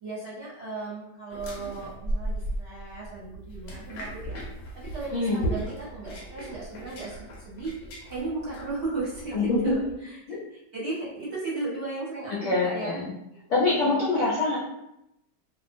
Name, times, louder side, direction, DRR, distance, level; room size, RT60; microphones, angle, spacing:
voice 1, 0.0-4.4 4.7-10.2 10.5-13.1 13.8-14.1, right 3 dB, 45° right, -9 dB, 1.0 m, -35 dB
sound 1, 1.3-9.9, right 1 dB, 85° left, 1.2 m, -36 dB
voice 2, 9.3-9.7 10.3-10.4 12.4-13.1 13.5-14.6, left 3 dB, 60° left, -8 dB, 0.8 m, -24 dB
2.7 x 2.1 x 2.6 m, 0.83 s
omnidirectional pair, 1.8 m